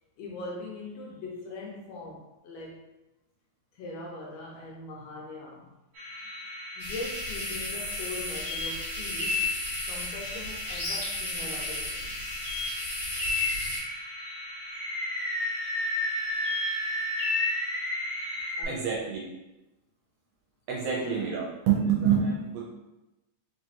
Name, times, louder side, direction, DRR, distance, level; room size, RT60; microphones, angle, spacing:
voice 1, 0.2-2.9 3.7-5.7 6.8-9.5 9.9-12.1 18.6-19.1 21.0-21.2, left 2 dB, 75° left, -2 dB, 1.7 m, -41 dB
sound 1, 5.9-18.5, left 3 dB, 45° right, 1.0 m, -36 dB
sound 2, 6.8-13.8, left 1 dB, 40° left, 1.3 m, -35 dB
Animal, 10.7-11.1 11.5-11.7 13.3-14.0 14.7-18.6, equal, 60° left, 1.6 m, -32 dB
voice 2, 18.7-19.2 20.7-22.7, right 7 dB, 75° right, -3 dB, 1.5 m, -27 dB
4.7 x 3.0 x 2.8 m, 0.99 s
omnidirectional pair, 3.3 m